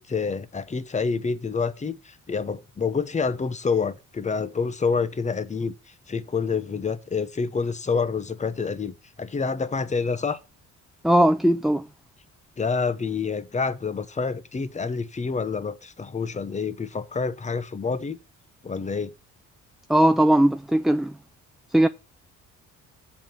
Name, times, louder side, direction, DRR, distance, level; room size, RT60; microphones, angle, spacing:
voice 1, 0.0-5.7 6.1-10.4 12.6-18.2 18.6-19.1, left 5 dB, 25° left, 0.9 m, -27 dB
voice 2, 11.0-11.8 19.9-21.1 21.7-21.9, right 1 dB, ahead, 0.3 m, -19 dB
7.6 x 4.6 x 6.8 m
cardioid pair, 90°, 30 cm